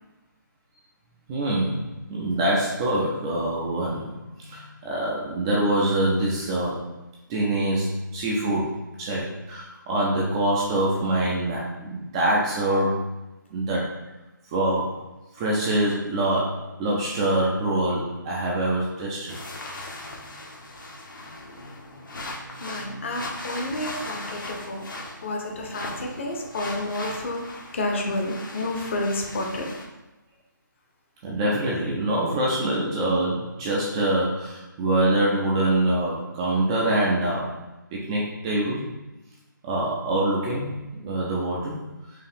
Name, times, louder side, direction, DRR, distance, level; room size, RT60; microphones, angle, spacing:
voice 1, 1.3-1.8 2.1-6.9 7.3-13.0 13.5-13.9 14.5-15.0 15.3-19.4 31.2-37.5 37.9-38.9 39.6-41.8, right 1 dB, 15° right, -4 dB, 0.4 m, -25 dB
sound 1, 19.3-29.8, left 2 dB, 70° left, 1.0 m, -38 dB
voice 2, 22.6-24.8 25.2-29.7, left 1 dB, 35° left, 2 dB, 0.7 m, -30 dB
4.5 x 2.5 x 3.5 m, 1.1 s
figure-of-eight pair, 155°, 11 cm